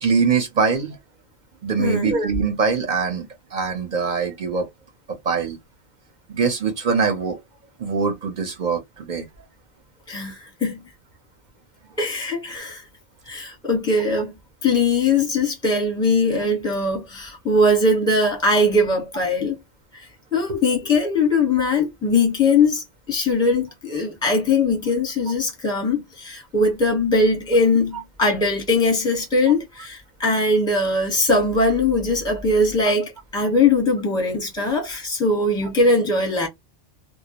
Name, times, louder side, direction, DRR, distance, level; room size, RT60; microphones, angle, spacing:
voice 1, 0.0-1.0 1.6-4.7 5.2-5.6 6.3-7.4 7.8-9.3 20.5-20.6, right 5 dB, 45° right, 0.7 m, -23 dB
voice 2, 1.8-2.2 10.1-10.8 12.0-12.8 13.3-14.3 14.6-19.6 19.9-20.1 20.3-36.5, left 2 dB, 5° left, 0.8 m, -21 dB
2.2 x 2.0 x 2.8 m
omnidirectional pair, 1.2 m